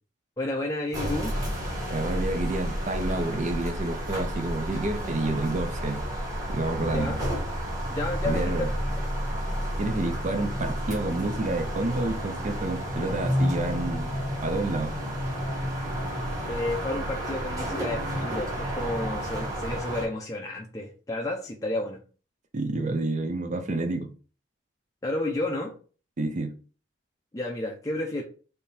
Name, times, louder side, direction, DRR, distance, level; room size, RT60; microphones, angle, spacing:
voice 1, 0.4-1.3 6.9-7.2 7.9-8.7 16.5-22.0 25.0-25.7 27.3-28.2, left 2 dB, 15° left, 0.5 m, -31 dB
sound 1, 0.9-20.1, equal, 20° right, 1.2 m, -31 dB
voice 2, 1.9-6.0 6.5-7.1 8.2-8.7 9.8-14.1 14.4-15.0 22.5-24.1 26.2-26.6, right 2 dB, 40° right, 0.5 m, -29 dB
3.5 x 2.7 x 4.2 m
head